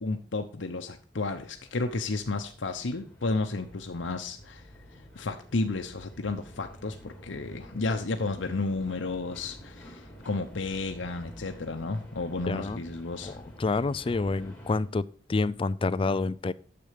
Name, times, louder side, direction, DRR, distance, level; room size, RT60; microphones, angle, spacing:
voice 1, 0.0-4.6 5.1-13.4, left 3 dB, 85° left, 0.8 m, -32 dB
sound 1, 1.5-14.8, equal, 5° left, 3.1 m, -49 dB
voice 2, 12.5-12.8 13.2-13.3 13.6-15.0 15.3-16.5, left 3 dB, 30° left, 0.4 m, -28 dB
9.6 x 7.0 x 5.0 m
head